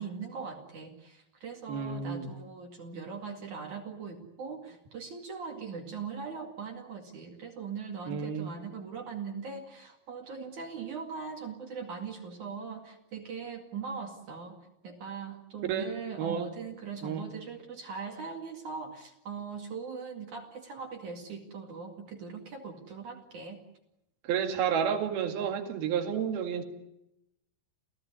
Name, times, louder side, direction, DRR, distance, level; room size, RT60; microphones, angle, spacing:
voice 1, 0.0-14.6 14.8-23.6, right 5 dB, 55° right, 2 dB, 3.5 m, -40 dB
voice 2, 1.7-2.3 8.1-8.5 15.7-15.9 16.2-16.5 17.0-17.3 24.2-26.6, right 7 dB, 75° right, 6 dB, 4.0 m, -30 dB
29.0 x 17.0 x 9.6 m, 0.84 s
omnidirectional pair, 4.4 m